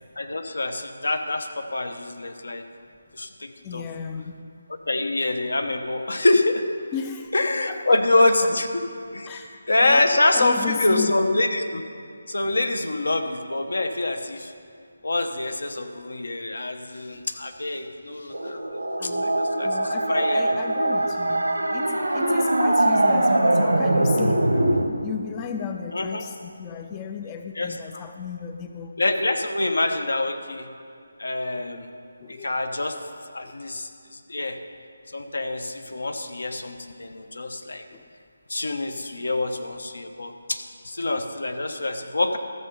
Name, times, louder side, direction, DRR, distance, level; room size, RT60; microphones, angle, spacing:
voice 1, 0.2-2.6 3.1-3.8 4.9-6.6 7.3-8.7 9.1-9.4 9.7-11.8 12.3-14.5 15.0-21.0 25.9-26.2 27.6-28.0 29.0-30.7 31.2-31.9 32.3-33.0 33.3-34.6 35.1-37.8 38.5-42.4, left 2 dB, 75° left, 7 dB, 1.0 m, -25 dB
voice 2, 3.6-4.6 6.9-7.4 7.7-8.5 9.2-11.2 17.1-17.3 19.0-29.0 32.2-32.5 33.4-33.5 37.9-38.1, left 7 dB, 20° left, 6 dB, 0.4 m, -35 dB
sound 1, 18.3-24.8, right 1 dB, 90° right, 1.3 m, -22 dB
13.5 x 6.6 x 5.4 m, 2.4 s
figure-of-eight pair, 160°, 0 cm